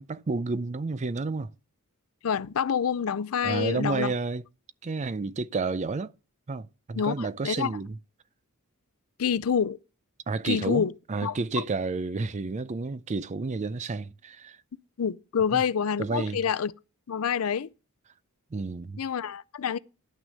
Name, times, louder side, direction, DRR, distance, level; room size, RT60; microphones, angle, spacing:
voice 1, 0.0-1.5 3.4-4.4 4.8-6.1 6.5-8.0 10.3-14.6 15.5-15.6 16.0-16.4 18.5-19.0, right 3 dB, 30° right, 0.4 m, -31 dB
voice 2, 2.2-4.1 7.0-7.7 9.2-9.8 10.5-10.9 11.2-11.4 15.0-16.7 17.1-17.7 19.0-19.8, left 7 dB, 70° left, 0.5 m, -27 dB
11.0 x 6.1 x 6.5 m
head